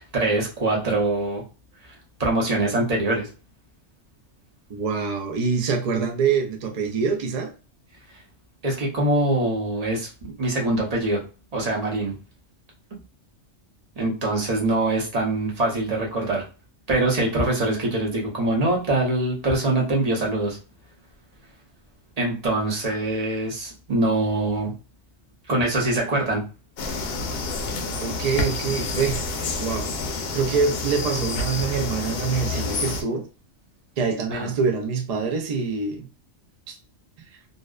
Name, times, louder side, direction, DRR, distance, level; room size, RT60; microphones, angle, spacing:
voice 1, 0.0-1.4 2.2-3.3 8.6-11.2 11.5-12.1 12.9-13.0 14.0-16.4 16.9-20.6 22.2-24.7 25.5-26.4 34.3-34.5, right 2 dB, 40° right, 0.7 m, -23 dB
voice 2, 4.7-7.5 28.0-29.2 29.6-29.9 30.3-33.3 34.0-36.1 36.7-36.8, right 5 dB, 60° right, 0.4 m, -25 dB
sound 1, 26.8-33.0, left 3 dB, 65° left, 0.7 m, -28 dB
2.6 x 2.0 x 2.3 m
omnidirectional pair, 1.3 m